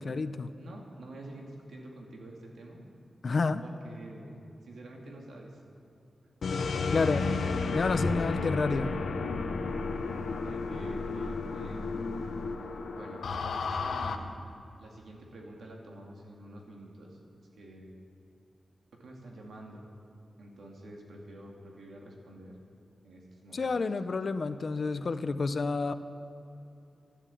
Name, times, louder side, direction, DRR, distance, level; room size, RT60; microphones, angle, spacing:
voice 1, 0.0-0.5 3.2-3.6 6.9-7.4 7.7-8.9 23.5-25.9, left 4 dB, 55° left, 11 dB, 0.7 m, -29 dB
voice 2, 0.6-2.9 3.6-5.6 8.1-8.8 10.4-12.1 12.9-14.3 14.8-17.2 17.5-17.9 18.9-19.9 20.4-22.6 23.0-23.7, right 1 dB, 90° right, 0 dB, 2.5 m, -48 dB
sound 1, 6.4-14.1, left 4 dB, 80° left, 0.9 m, -32 dB
12.0 x 10.5 x 8.5 m, 2.7 s
wide cardioid pair, 95°, 0 cm